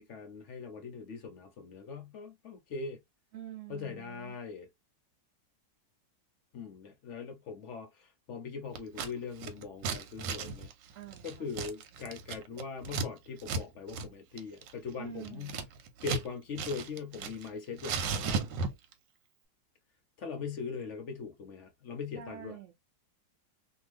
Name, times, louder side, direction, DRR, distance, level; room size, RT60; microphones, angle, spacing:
voice 1, 0.0-3.0 3.7-4.7 6.5-10.7 11.2-15.6 16.0-18.4 20.2-22.5, left 5 dB, 65° left, 0.7 m, -41 dB
voice 2, 3.3-4.4 10.9-11.5 15.0-15.6 22.2-22.7, right 10 dB, 65° right, 0.7 m, -46 dB
Scissors, 8.7-9.1 9.4-13.1 13.4-13.6 13.9-14.1 14.4-16.3 16.5-17.5 17.8-18.9, right 4 dB, 90° right, 1.3 m, -35 dB
2.8 x 2.4 x 3.1 m
omnidirectional pair, 1.9 m